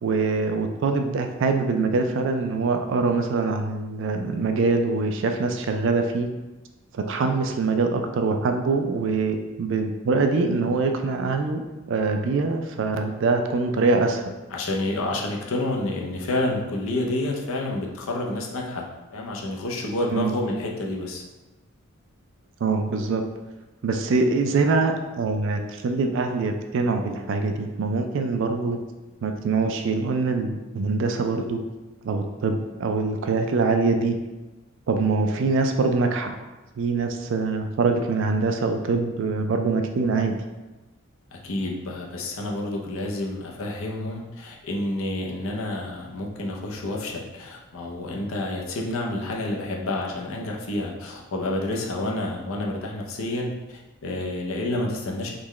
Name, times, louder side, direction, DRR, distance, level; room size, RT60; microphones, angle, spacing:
voice 1, 0.0-6.3 6.9-11.6 11.9-14.3 20.1-20.3 22.6-23.2 23.8-28.8 29.2-31.6 32.0-34.2 34.9-36.3 36.8-40.4, right 3 dB, 55° right, 5 dB, 0.3 m, -24 dB
voice 2, 14.5-21.2 41.3-55.3, left 1 dB, 65° left, -1 dB, 0.5 m, -29 dB
3.7 x 2.2 x 3.1 m, 1.1 s
head